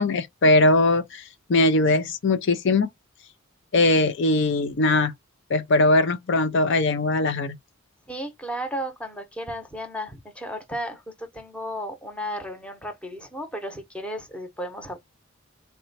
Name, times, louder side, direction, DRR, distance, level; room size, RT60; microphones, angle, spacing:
voice 1, 0.0-2.9 3.7-5.1 5.5-7.6, left 2 dB, 55° left, 0.5 m, -20 dB
voice 2, 8.1-15.0, equal, 5° left, 0.8 m, -34 dB
4.1 x 2.2 x 4.0 m
head